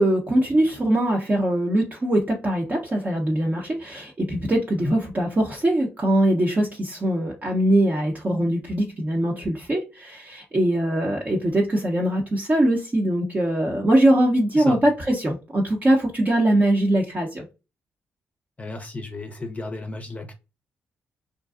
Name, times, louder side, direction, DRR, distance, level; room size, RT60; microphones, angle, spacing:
voice 1, 0.0-17.4, right 1 dB, 30° right, 0.7 m, -22 dB
voice 2, 18.6-20.3, left 2 dB, 30° left, 0.6 m, -32 dB
2.5 x 2.2 x 2.4 m
supercardioid pair, 55°, 5 cm